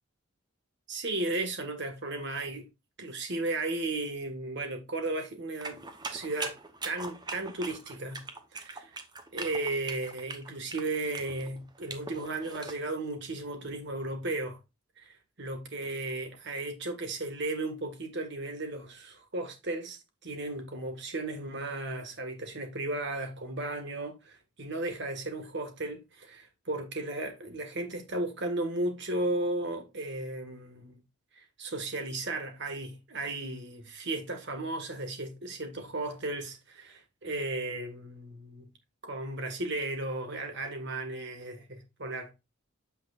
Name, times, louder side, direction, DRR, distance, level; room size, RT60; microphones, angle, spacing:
voice 1, 0.9-2.7 3.0-5.8 6.1-6.6 6.8-8.2 8.5-8.7 9.3-14.6 15.0-31.0 31.3-38.7 39.0-42.3, right 2 dB, 55° right, 1.7 m, -35 dB
sound 1, 5.6-12.8, right 3 dB, 20° right, 0.9 m, -41 dB
8.4 x 5.8 x 2.5 m
head